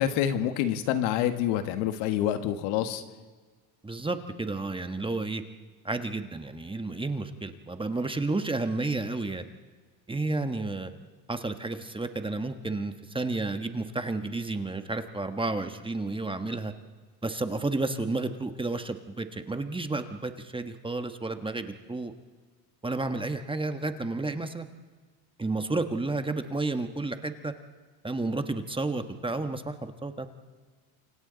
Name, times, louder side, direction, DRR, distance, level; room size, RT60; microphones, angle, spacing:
voice 1, 0.0-3.0, left 10 dB, 75° left, 8 dB, 1.9 m, -27 dB
voice 2, 3.8-5.4 5.8-9.4 10.1-10.9 11.3-16.7 17.2-22.1 22.8-24.7 25.4-27.5 28.0-30.3, right 2 dB, 10° right, 8 dB, 1.4 m, -31 dB
29.0 x 25.0 x 4.1 m, 1.4 s
supercardioid pair, 100°, 46 cm